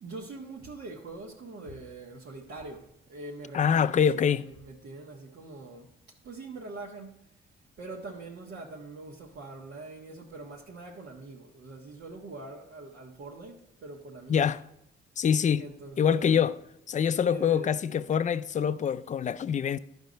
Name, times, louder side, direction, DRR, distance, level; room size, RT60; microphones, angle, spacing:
voice 1, 0.0-5.9 6.2-7.2 7.8-14.5 15.6-16.5 17.2-17.7, right 2 dB, 60° right, 1.3 m, -43 dB
voice 2, 3.5-4.5 14.3-14.6 15.2-15.6 16.0-16.6 16.9-19.8, left 8 dB, 40° left, 0.5 m, -25 dB
11.5 x 5.4 x 5.2 m
cardioid pair, 90°, 20 cm